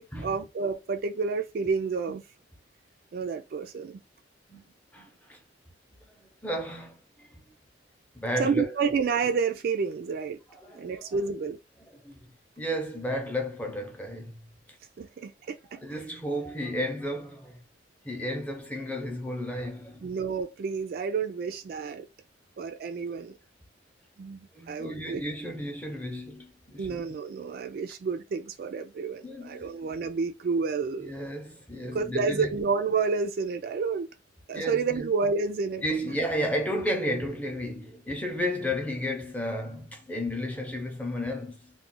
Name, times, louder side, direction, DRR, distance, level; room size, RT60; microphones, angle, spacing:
voice 1, 0.0-2.2 3.1-4.0 8.4-10.4 10.7-11.6 15.0-15.6 15.9-16.0 20.0-22.1 22.6-23.4 24.2-25.2 26.8-31.2 31.9-34.1 34.5-35.8, right 5 dB, 50° right, 0.3 m, -30 dB
voice 2, 4.9-5.4 6.2-7.3 8.1-8.7 10.5-11.2 11.9-12.2 12.6-14.4 15.7-17.6 18.0-20.2 24.5-27.0 29.2-29.7 31.1-32.5 34.5-35.0 35.8-41.7, equal, 10° left, 0.6 m, -33 dB
2.4 x 2.1 x 3.7 m
head